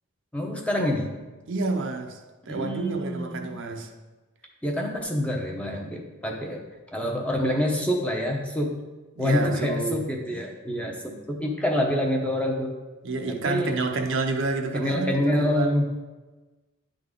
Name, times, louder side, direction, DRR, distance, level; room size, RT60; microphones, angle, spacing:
voice 1, 0.3-1.1 2.5-3.5 4.6-6.6 6.9-8.8 9.2-12.7 13.3-13.7 14.7-16.1, left 1 dB, 5° left, 0 dB, 0.8 m, -26 dB
voice 2, 1.5-2.2 2.5-3.9 9.2-10.0 13.0-15.7, right 3 dB, 60° right, 3 dB, 0.6 m, -29 dB
10.5 x 3.9 x 3.7 m, 1.2 s
head